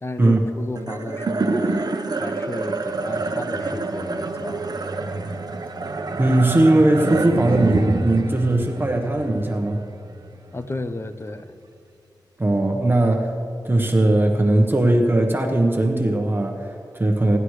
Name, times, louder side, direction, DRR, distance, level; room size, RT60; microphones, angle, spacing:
voice 1, 0.0-4.7 10.5-11.5, left 2 dB, 35° left, 10 dB, 0.8 m, -33 dB
sound 1, 0.8-11.3, right 3 dB, 60° right, 1.0 m, -27 dB
voice 2, 6.2-9.8 12.4-13.3 13.6-17.4, right 1 dB, 30° right, 2 dB, 1.2 m, -19 dB
29.5 x 11.0 x 3.3 m, 2.5 s
wide cardioid pair, 80°, 8 cm